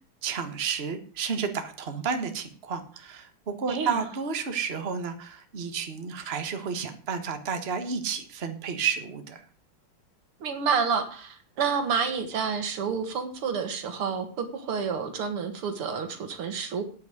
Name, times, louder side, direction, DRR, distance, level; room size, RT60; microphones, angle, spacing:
voice 1, 0.2-9.4, right 6 dB, 30° right, 7 dB, 1.5 m, -31 dB
voice 2, 3.7-4.1 10.4-16.8, right 6 dB, 85° right, 7 dB, 2.7 m, -29 dB
9.6 x 8.2 x 7.9 m, 0.43 s
omnidirectional pair, 2.4 m